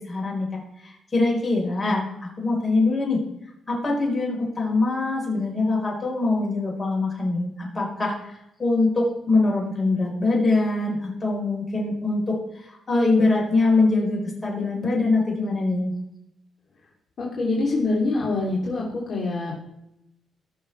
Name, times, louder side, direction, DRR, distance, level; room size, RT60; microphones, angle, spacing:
voice 1, 0.1-0.5 1.1-3.2 3.7-8.1 8.6-12.3 12.9-15.9, left 3 dB, 25° left, -2 dB, 4.6 m, -23 dB
voice 2, 17.2-19.6, left 2 dB, 45° left, -5 dB, 3.1 m, -25 dB
18.5 x 6.5 x 3.4 m, 0.84 s
cardioid pair, 90°, 0 cm